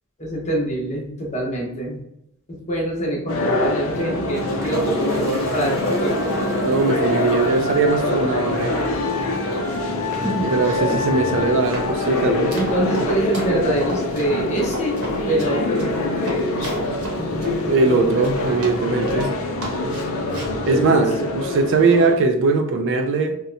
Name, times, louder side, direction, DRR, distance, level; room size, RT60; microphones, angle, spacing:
voice 1, 0.2-2.0 2.5-6.5 10.1-11.0 12.5-15.9 20.6-20.8 21.2-21.3, right 1 dB, 30° left, 0.7 m, -25 dB
sound 1, 3.3-22.1, left 2 dB, 65° left, 0.5 m, -24 dB
Toilet flush, 3.9-12.8, equal, 15° right, 0.6 m, -41 dB
voice 2, 6.6-8.8 10.4-12.5 17.7-19.3 20.7-23.4, right 3 dB, 55° right, 0.3 m, -20 dB
Run, 10.7-19.3 19.6-20.6, right 1 dB, 75° right, 0.9 m, -34 dB
2.7 x 2.1 x 2.5 m
head